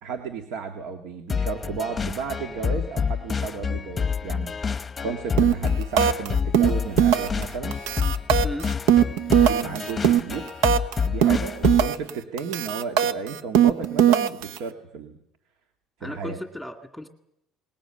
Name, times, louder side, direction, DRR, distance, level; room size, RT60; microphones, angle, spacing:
voice 1, 0.0-4.5 5.0-7.8 9.3-10.5 11.0-15.2 16.0-16.4, right 5 dB, 70° right, 6 dB, 2.0 m, -33 dB
Autumn Loop, 1.3-12.0, left 6 dB, 20° left, 0.9 m, -28 dB
sound 1, 5.4-5.7 6.0-6.3 6.5-7.4 7.7-10.9 11.2-12.1 12.4-14.6, right 10 dB, 90° right, 1.0 m, -19 dB
voice 2, 16.0-17.1, left 1 dB, ahead, 5 dB, 2.1 m, -35 dB
21.5 x 20.0 x 8.9 m, 0.78 s
cardioid pair, 150°, 0 cm